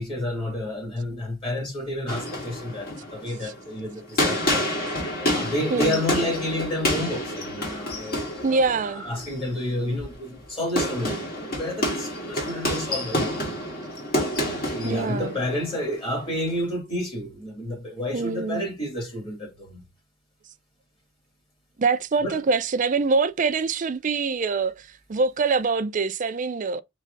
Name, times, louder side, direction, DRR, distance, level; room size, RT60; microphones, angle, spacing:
voice 1, 0.0-4.7 5.3-8.6 8.8-13.5 14.3-19.8 22.2-22.4, left 1 dB, 25° left, 2.3 m, -30 dB
sound 1, 2.1-16.6, equal, 50° left, 1.9 m, -29 dB
voice 2, 8.4-9.0 14.8-15.4 18.1-18.7 21.8-26.8, right 4 dB, 40° right, 0.4 m, -24 dB
6.2 x 3.1 x 2.6 m
head